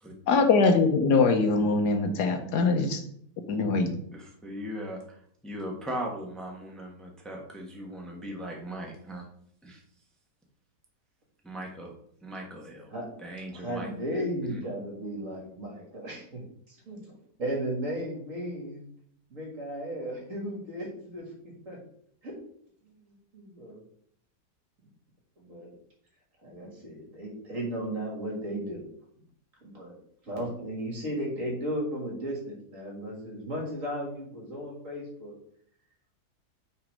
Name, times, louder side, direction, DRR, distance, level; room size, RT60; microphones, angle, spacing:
voice 1, 0.3-3.0 3.5-4.0, left 4 dB, 75° left, 5 dB, 1.4 m, -22 dB
voice 2, 4.1-5.0 5.4-9.3 9.6-9.8 11.4-11.9 12.2-12.9 13.2-13.9 14.5-14.6, right 1 dB, ahead, -1 dB, 1.0 m, -38 dB
voice 3, 13.5-18.8 19.3-21.8 22.2-22.3 23.1-23.8 25.4-25.7 26.4-28.9 29.6-30.0 30.2-35.3, equal, 50° right, -1 dB, 2.2 m, -35 dB
5.8 x 4.0 x 5.3 m, 0.64 s
omnidirectional pair, 1.8 m